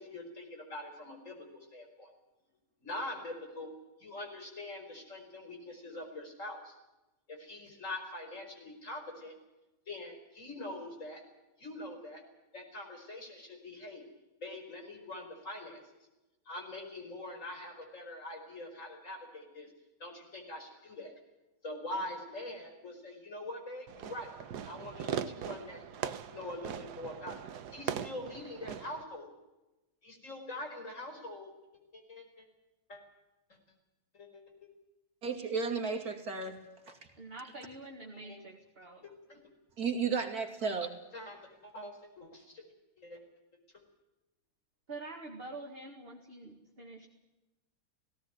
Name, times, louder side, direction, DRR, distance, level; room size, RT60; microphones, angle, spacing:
voice 1, 0.0-2.1 2.8-3.7 4.0-6.8 7.3-9.3 9.9-11.2 11.6-12.2 12.5-14.0 14.4-15.8 16.5-19.7 20.0-21.1 21.6-24.3 24.7-27.4 27.7-29.4 30.0-31.5 31.9-32.5 32.9-33.0 34.1-34.7 38.2-38.4 39.0-39.4 41.1-42.3 43.0-43.2, left 1 dB, 35° left, 3 dB, 5.3 m, -44 dB
Fireworks, 23.9-29.0, right 9 dB, 60° right, 1.3 m, -40 dB
voice 2, 35.2-36.6 36.9-37.0 39.8-40.9, right 5 dB, 45° right, 3 dB, 3.1 m, -33 dB
voice 3, 37.1-39.1 44.9-47.1, right 2 dB, 30° right, 1 dB, 2.2 m, -46 dB
18.0 x 17.5 x 9.3 m, 1.0 s
omnidirectional pair, 2.3 m